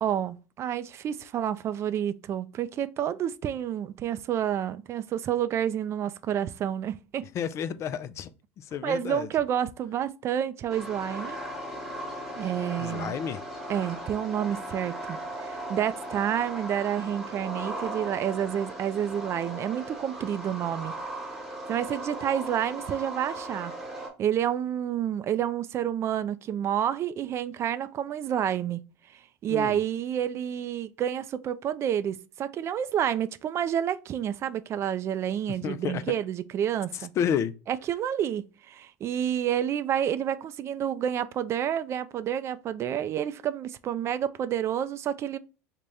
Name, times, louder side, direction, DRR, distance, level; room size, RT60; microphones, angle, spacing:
voice 1, 0.0-7.3 8.8-11.4 12.3-13.2 13.7-20.9 21.7-23.7 24.2-28.8 29.4-37.1 37.7-45.4, right 10 dB, 40° right, 0.3 m, -29 dB
voice 2, 7.3-8.3 8.6-9.3 12.8-13.4 29.5-29.8 35.6-36.0 36.9-37.5, left 8 dB, 45° left, 0.3 m, -31 dB
sound 1, 10.7-24.1, right 1 dB, 5° right, 1.3 m, -37 dB
3.4 x 2.1 x 3.9 m
hypercardioid pair, 90°, 7 cm